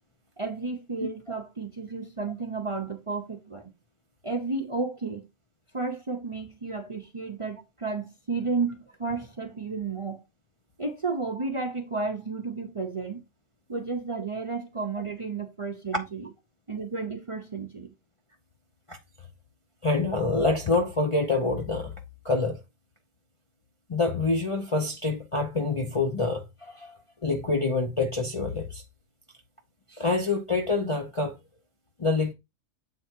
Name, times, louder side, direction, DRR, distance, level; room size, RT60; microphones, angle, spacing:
voice 1, 0.4-3.7 4.2-5.3 5.7-10.2 10.8-13.2 13.7-16.3 16.7-17.9, right 4 dB, 30° right, 0.6 m, -32 dB
voice 2, 19.8-22.0 22.2-22.6 23.9-28.8 29.9-31.4 32.0-32.3, left 3 dB, 35° left, 0.5 m, -26 dB
7.7 x 3.4 x 4.5 m
omnidirectional pair, 1.4 m